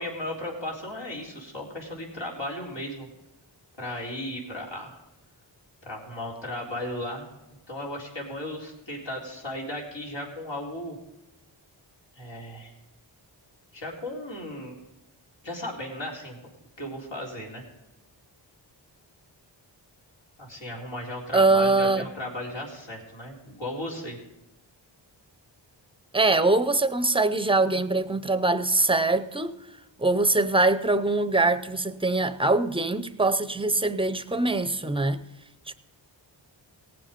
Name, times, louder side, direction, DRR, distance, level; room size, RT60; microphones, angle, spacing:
voice 1, 0.0-3.1 3.8-5.0 5.8-7.3 7.7-11.0 12.2-12.7 13.7-14.7 15.4-16.4 16.8-17.6 20.4-24.2, left 1 dB, 70° left, 3.9 m, -35 dB
voice 2, 21.3-22.0 26.1-29.5 30.0-35.2 35.7-35.8, right 2 dB, 10° right, 0.7 m, -23 dB
18.0 x 7.6 x 5.3 m
wide cardioid pair, 80°, 45 cm